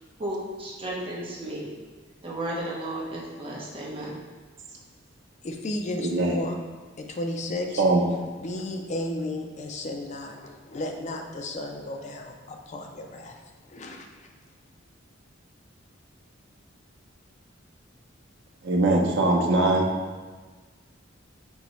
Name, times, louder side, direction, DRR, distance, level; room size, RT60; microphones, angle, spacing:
voice 1, 0.2-1.8 2.2-4.2, right 1 dB, 30° right, -5 dB, 0.9 m, -33 dB
voice 2, 5.4-6.6 7.0-7.8 8.4-13.3 13.7-14.1, left 1 dB, 35° left, 3 dB, 0.4 m, -33 dB
voice 3, 6.0-6.3 7.8-8.0 18.6-19.9, right 2 dB, 65° right, 0 dB, 0.6 m, -21 dB
5.3 x 2.9 x 3.0 m, 1.4 s
head